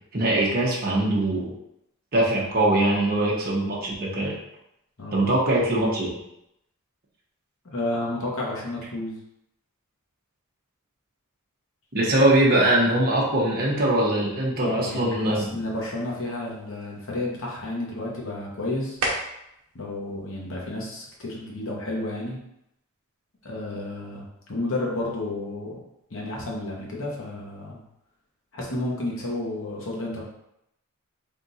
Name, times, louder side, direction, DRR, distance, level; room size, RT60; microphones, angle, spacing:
voice 1, 0.1-1.5 2.1-4.3 5.1-6.1 11.9-15.4, right 1 dB, 40° right, -5 dB, 0.8 m, -22 dB
voice 2, 5.0-5.3 7.6-9.1 14.6-19.0 19.7-22.4 23.4-25.8 26.1-27.8 28.5-30.2, left 2 dB, 60° left, -3 dB, 1.0 m, -31 dB
sound 1, 13.4-21.4, right 2 dB, 70° right, 0.8 m, -39 dB
3.6 x 2.5 x 4.1 m, 0.80 s
head